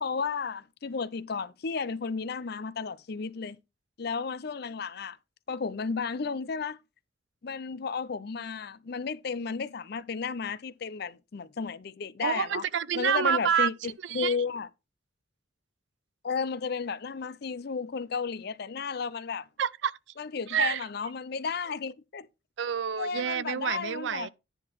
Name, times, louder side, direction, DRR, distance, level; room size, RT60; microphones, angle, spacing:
voice 1, 0.0-3.6 4.0-5.2 5.5-6.8 7.4-12.6 12.9-14.7 16.2-19.5 20.2-22.3 23.0-24.3, left 5 dB, 55° left, 0.5 m, -33 dB
voice 2, 12.2-13.7 14.1-14.3 19.6-19.9 20.5-20.8 22.6-24.3, right 8 dB, 65° right, 0.4 m, -28 dB
10.0 x 3.9 x 6.0 m
head